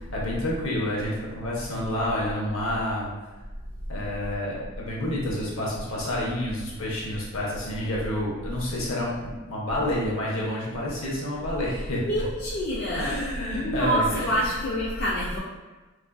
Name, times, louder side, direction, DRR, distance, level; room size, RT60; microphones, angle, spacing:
voice 1, 0.1-3.1 3.9-12.0 12.9-14.5, left 1 dB, 70° left, -5 dB, 0.7 m, -29 dB
voice 2, 12.0-15.4, equal, 45° left, -7 dB, 0.3 m, -27 dB
2.4 x 2.3 x 2.2 m, 1.2 s
head